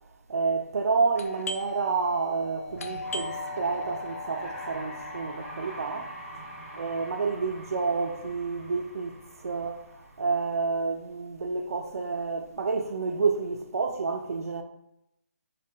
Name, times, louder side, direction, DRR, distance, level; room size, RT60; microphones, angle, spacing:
voice 1, 0.3-6.1 6.7-9.2 9.4-14.6, right 4 dB, 85° right, 0.4 m, -29 dB
Doorbell, 1.1-10.5 10.8-10.9 11.5-11.9 12.2-13.6, left 3 dB, 75° left, 0.5 m, -41 dB
sound 1, 2.7-10.7, right 1 dB, 5° left, 0.5 m, -43 dB
3.6 x 2.2 x 4.2 m
hypercardioid pair, 175°, 8 cm